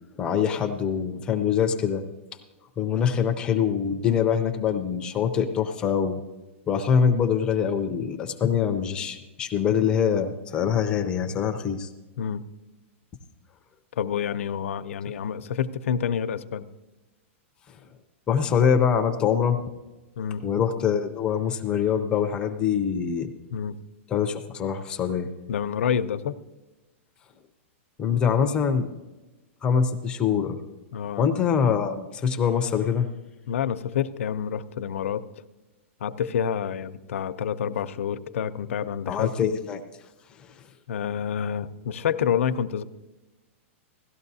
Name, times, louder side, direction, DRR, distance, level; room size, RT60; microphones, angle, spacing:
voice 1, 0.2-2.0 2.8-6.2 6.7-11.9 17.7-17.8 18.3-19.6 20.4-23.3 24.1-25.3 28.0-28.9 29.6-30.6 31.2-33.1 39.1-39.8 40.4-40.5, left 7 dB, 15° left, 6 dB, 0.4 m, -24 dB
voice 2, 14.0-16.7 20.2-20.4 23.5-23.8 25.5-26.4 30.9-31.2 33.5-35.3 36.0-39.5 40.9-42.8, left 8 dB, 75° left, 11 dB, 0.6 m, -28 dB
17.0 x 12.5 x 2.7 m, 1.1 s
supercardioid pair, 175°, 7 cm